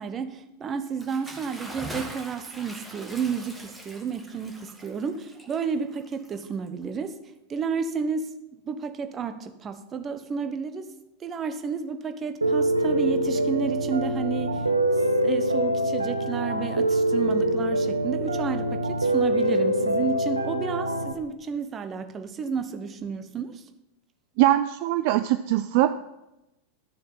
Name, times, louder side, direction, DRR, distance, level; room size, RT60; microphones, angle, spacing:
voice 1, 0.0-7.2 7.5-8.4 8.6-10.9 11.2-14.6 15.2-23.6, right 6 dB, 25° right, 9 dB, 0.9 m, -31 dB
Bathtub (filling or washing) / Splash splatter, 0.9-6.8, right 1 dB, 10° right, 1.8 m, -42 dB
Piano, 12.4-21.1, right 1 dB, 80° right, 0.9 m, -24 dB
voice 2, 24.4-25.9, right 14 dB, 45° right, 11 dB, 0.4 m, -21 dB
12.0 x 6.9 x 5.7 m, 0.93 s
figure-of-eight pair, 90°, 0 cm